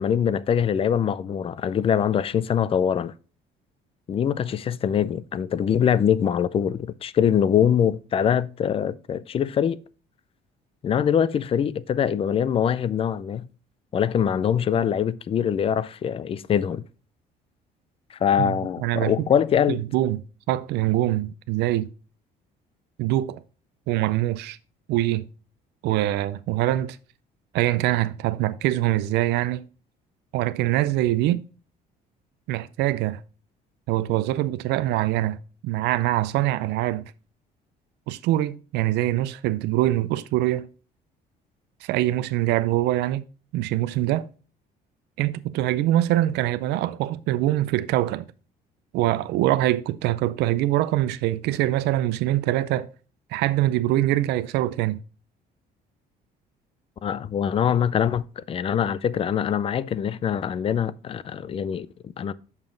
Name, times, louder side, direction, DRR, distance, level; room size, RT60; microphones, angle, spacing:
voice 1, 0.0-3.1 4.1-9.8 10.8-13.5 13.9-16.8 18.2-19.8 57.0-62.3, left 8 dB, 35° left, 0.4 m, -23 dB
voice 2, 18.4-19.3 19.7-20.2 20.5-21.9 23.0-23.4 23.9-24.6 24.9-25.3 25.8-27.0 27.5-29.6 30.3-31.4 32.5-33.2 33.9-35.4 35.6-37.0 38.1-40.7 41.8-43.3 43.5-44.3 45.2-48.3 48.9-52.9 53.3-55.0, right 15 dB, 80° right, 0.5 m, -24 dB
6.9 x 5.5 x 3.8 m
cardioid pair, 110°, 17 cm